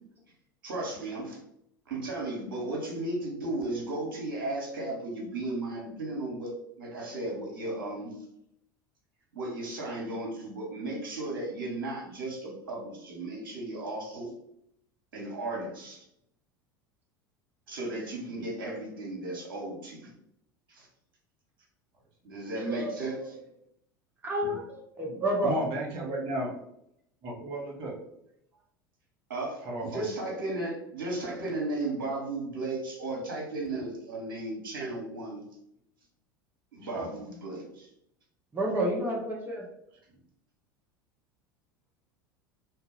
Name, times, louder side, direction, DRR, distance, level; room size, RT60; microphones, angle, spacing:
voice 1, 0.6-1.4 1.9-6.5 6.8-8.1 9.3-14.3 15.1-16.0 17.7-20.1 20.7-20.9 22.2-23.3 29.3-35.4 36.7-37.9, right 2 dB, 75° right, -2 dB, 1.2 m, -35 dB
voice 2, 22.7-23.4 24.2-25.6 38.5-39.6, right 1 dB, 15° right, -3 dB, 1.1 m, -30 dB
voice 3, 25.4-26.5 27.2-28.0 29.6-30.1 36.9-37.1, right 1 dB, 50° right, -1 dB, 1.2 m, -34 dB
2.8 x 2.6 x 3.9 m, 0.76 s
figure-of-eight pair, 75°, 12 cm